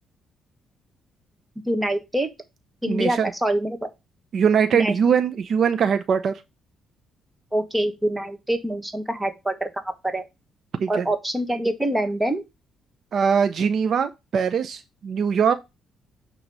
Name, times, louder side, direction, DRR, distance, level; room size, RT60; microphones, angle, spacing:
voice 1, 1.6-2.3 2.8-3.9 4.7-4.9 7.5-10.2 10.9-12.4, right 1 dB, 10° right, 1.4 m, -25 dB
voice 2, 2.8-3.3 4.3-6.4 10.8-11.1 13.1-15.5, right 7 dB, 60° right, 0.7 m, -21 dB
8.7 x 3.1 x 5.4 m
cardioid pair, 90°, 0 cm